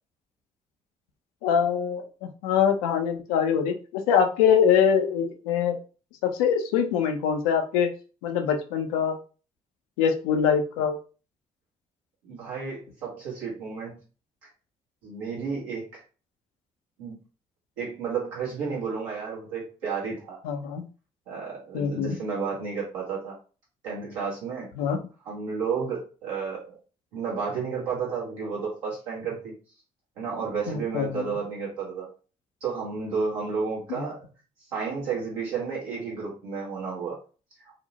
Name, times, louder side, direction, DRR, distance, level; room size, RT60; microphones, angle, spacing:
voice 1, 1.4-5.8 6.2-7.9 8.2-9.2 10.0-11.0 20.4-20.8 21.7-22.2 24.8-25.0 30.7-31.3 34.0-34.1, left 7 dB, 85° left, 6 dB, 0.4 m, -24 dB
voice 2, 12.2-13.9 15.0-16.0 17.0-17.2 17.8-20.4 21.3-23.3 23.8-24.7 25.2-26.8 27.1-29.5 30.2-32.1 32.6-34.2 34.7-37.2, right 5 dB, 85° right, -5 dB, 1.1 m, -32 dB
2.7 x 2.0 x 2.7 m, 0.35 s
hypercardioid pair, 40°, 17 cm